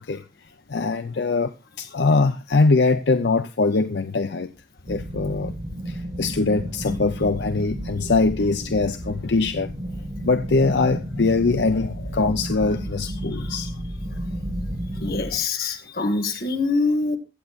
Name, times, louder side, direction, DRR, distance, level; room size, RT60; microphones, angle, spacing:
voice 1, 0.7-1.5 1.8-4.5 4.9-5.5 6.2-9.7 10.2-13.7 15.1-15.2, left 3 dB, 75° left, 0.6 m, -22 dB
sound 1, 4.9-15.4, equal, 45° right, 4.1 m, -32 dB
voice 2, 15.0-17.2, left 3 dB, 55° left, 1.8 m, -24 dB
22.0 x 8.2 x 2.5 m
head